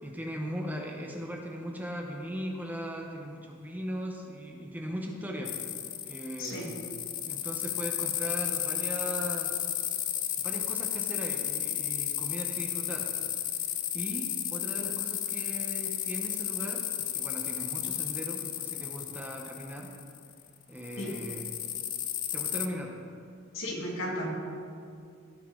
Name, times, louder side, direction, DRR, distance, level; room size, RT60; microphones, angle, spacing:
voice 1, 0.0-5.6 6.0-6.8 7.2-9.5 10.4-13.1 13.6-19.9 20.7-21.5 22.3-22.9, equal, 10° right, 0 dB, 1.0 m, -38 dB
sound 1, 5.4-20.4 20.8-22.7, left 11 dB, 45° left, 0.5 m, -33 dB
voice 2, 6.4-6.7 21.0-21.1 23.5-24.5, equal, 80° left, -2 dB, 2.0 m, -34 dB
16.5 x 5.5 x 3.8 m, 2.3 s
head